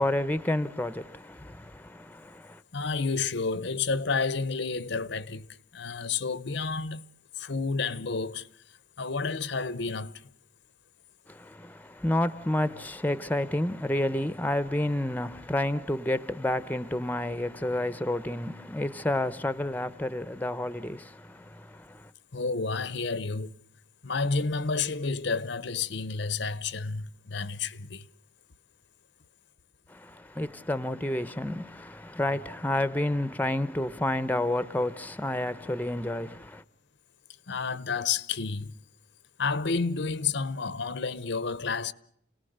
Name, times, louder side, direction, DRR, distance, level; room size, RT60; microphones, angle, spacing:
voice 1, 0.0-2.6 11.3-22.1 29.9-36.6, left 1 dB, 10° left, 0.9 m, -30 dB
voice 2, 2.7-7.1 7.3-8.5 9.0-10.3 22.3-23.6 24.0-28.1 37.5-38.8 39.4-41.9, left 4 dB, 65° left, 0.9 m, -30 dB
29.5 x 18.5 x 8.0 m
head